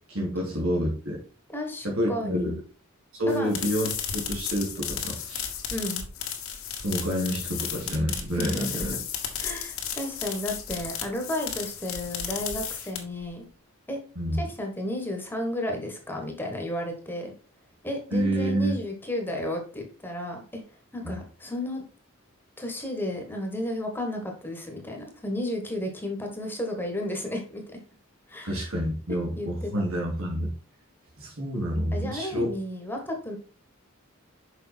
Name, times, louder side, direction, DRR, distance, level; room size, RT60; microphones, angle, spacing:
voice 1, 0.1-1.2 1.8-2.5 3.1-5.5 6.8-9.0 14.1-14.5 18.1-18.8 28.4-30.5 31.2-32.5, equal, 80° right, -2 dB, 2.7 m, -28 dB
voice 2, 1.5-2.6 3.3-3.6 5.7-6.0 8.3-8.7 9.4-13.4 13.9-14.0 14.3-17.3 17.8-20.6 20.9-21.9 22.6-27.6 28.3-28.6 29.3-29.8 31.9-33.4, left 1 dB, 10° left, 2 dB, 1.3 m, -33 dB
sound 1, 3.3-13.3, left 8 dB, 90° left, 1.7 m, -34 dB
6.6 x 5.0 x 4.3 m, 0.39 s
head